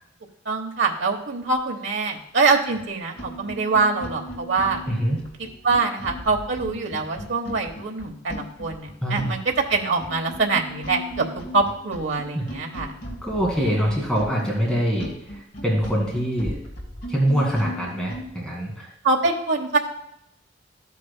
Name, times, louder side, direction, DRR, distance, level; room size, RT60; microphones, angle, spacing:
voice 1, 0.4-4.8 5.4-11.2 11.5-12.9 13.6-14.0 19.0-19.8, right 4 dB, 85° right, 1 dB, 1.1 m, -24 dB
sound 1, 2.7-2.8 3.1-18.3, equal, 55° left, 2.2 m, -37 dB
voice 2, 4.9-5.2 9.0-9.3 12.3-12.4 13.2-16.6 17.1-18.9, equal, 5° left, -3 dB, 2.1 m, -24 dB
13.0 x 8.3 x 2.2 m, 0.80 s
head